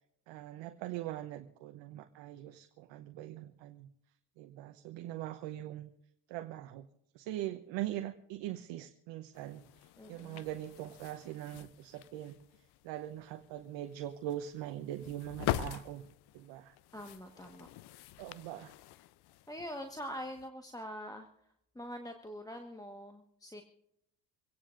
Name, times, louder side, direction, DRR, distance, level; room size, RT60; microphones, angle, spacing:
voice 1, 0.3-3.9 4.4-5.9 6.3-6.9 7.1-12.4 12.8-16.0 16.3-16.7 18.2-18.7, right 13 dB, 60° right, 7 dB, 1.0 m, -42 dB
sound 1, 9.3-20.5, left 14 dB, 50° left, 0.7 m, -44 dB
voice 2, 10.0-10.4 16.9-17.7 19.5-21.3 21.7-23.6, equal, 5° left, 4 dB, 1.4 m, -44 dB
24.5 x 17.5 x 2.6 m, 0.74 s
hypercardioid pair, 60°, 49 cm